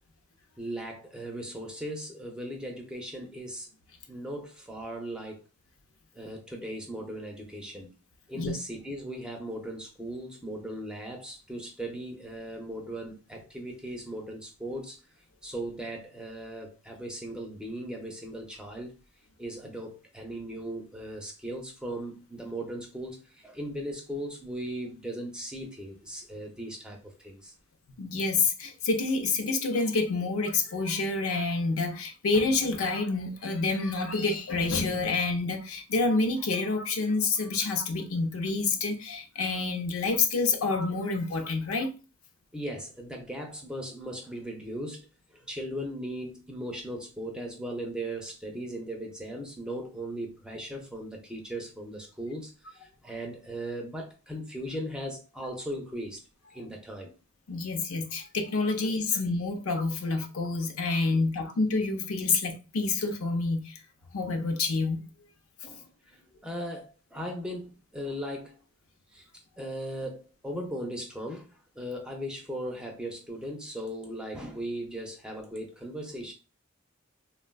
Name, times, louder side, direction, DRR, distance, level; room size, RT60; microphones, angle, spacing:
voice 1, 0.6-3.7 4.1-5.4 6.1-7.9 8.3-15.0 15.4-19.0 19.4-27.5 42.5-56.2 56.5-57.1 58.8-59.2 61.1-61.2 65.6-68.6 69.1-69.3 69.6-76.3, right 1 dB, 5° right, 0.4 m, -38 dB
voice 2, 28.0-41.9 57.5-63.8 64.1-65.0, left 3 dB, 80° left, 0.6 m, -28 dB
3.4 x 2.2 x 2.2 m
head